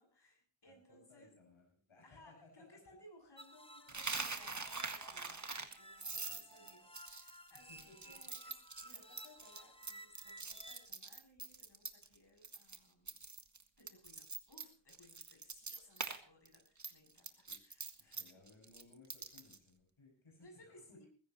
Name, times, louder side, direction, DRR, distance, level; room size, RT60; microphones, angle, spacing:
voice 1, 0.0-1.3 2.0-13.2 13.8-18.4 20.4-21.1, left 1 dB, 55° left, 2 dB, 8.0 m, -63 dB
voice 2, 0.7-2.6 6.1-6.6 7.7-8.0 17.5-17.6 18.0-21.0, left 3 dB, 80° left, 0 dB, 6.6 m, -63 dB
sound 1, 3.4-10.9, right 1 dB, 10° left, 1.2 m, -56 dB
Coin (dropping), 3.9-12.2 12.4-12.8 13.1-16.2 16.5-19.6, right 4 dB, 35° right, 1.8 m, -44 dB
20.0 x 16.0 x 3.1 m, 0.43 s
wide cardioid pair, 70°, 48 cm